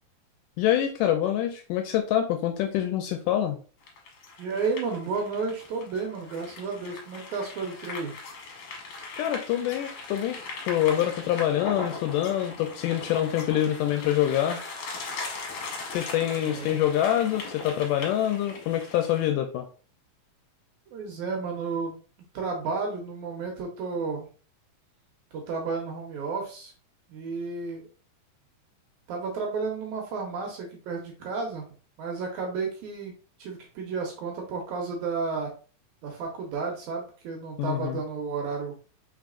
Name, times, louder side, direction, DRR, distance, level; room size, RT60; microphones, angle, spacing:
voice 1, 0.6-3.6 9.2-14.6 15.9-19.7 37.6-38.0, left 11 dB, 80° left, 5 dB, 2.0 m, -26 dB
sound 1, 3.8-19.3, left 4 dB, 65° left, 1.7 m, -39 dB
voice 2, 4.4-8.1 16.4-16.8 20.9-22.0 22.3-24.3 25.3-26.7 27.1-27.9 29.1-31.6 32.0-35.5 36.0-38.8, right 4 dB, 70° right, 0 dB, 2.0 m, -32 dB
4.7 x 4.0 x 2.4 m, 0.37 s
omnidirectional pair, 4.0 m